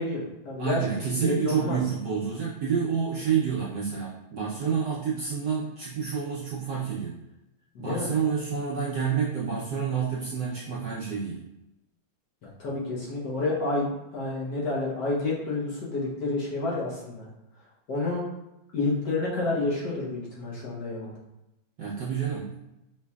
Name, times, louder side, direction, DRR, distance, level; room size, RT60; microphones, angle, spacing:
voice 1, 0.0-0.9 1.2-1.8 7.7-8.1 12.4-17.3 17.9-18.2 18.7-21.1, left 2 dB, 60° left, -5 dB, 1.5 m, -29 dB
voice 2, 0.6-7.2 7.8-11.4 21.8-22.5, right 6 dB, 65° right, -6 dB, 1.0 m, -28 dB
5.4 x 3.2 x 2.3 m, 0.90 s
omnidirectional pair, 2.3 m